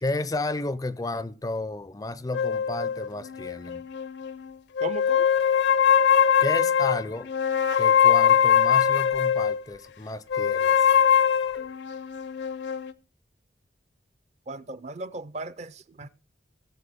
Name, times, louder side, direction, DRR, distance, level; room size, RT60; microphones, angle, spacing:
voice 1, 0.0-3.9 6.4-7.3 7.8-10.9 16.0-16.1, left 2 dB, 20° left, 0.4 m, -32 dB
sound 1, 2.3-4.4 4.8-9.6 10.3-12.9, left 8 dB, 70° left, 0.6 m, -22 dB
voice 2, 4.8-5.3 14.5-16.1, right 2 dB, 35° right, 0.5 m, -36 dB
16.5 x 7.3 x 3.5 m
head